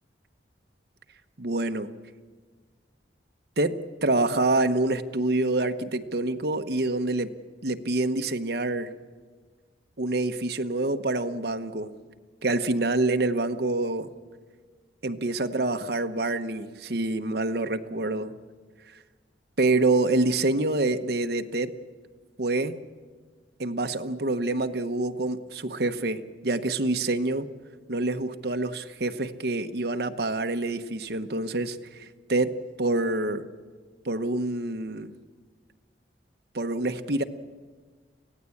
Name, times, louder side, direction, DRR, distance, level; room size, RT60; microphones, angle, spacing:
voice 1, 1.4-1.9 3.6-7.3 7.6-8.9 10.0-11.9 12.4-14.1 15.0-18.3 19.6-21.7 22.4-22.7 23.6-27.5 27.9-33.4 34.0-35.1 36.5-37.2, right 2 dB, 60° right, 7 dB, 1.1 m, -26 dB
24.0 x 16.5 x 8.6 m, 1.5 s
head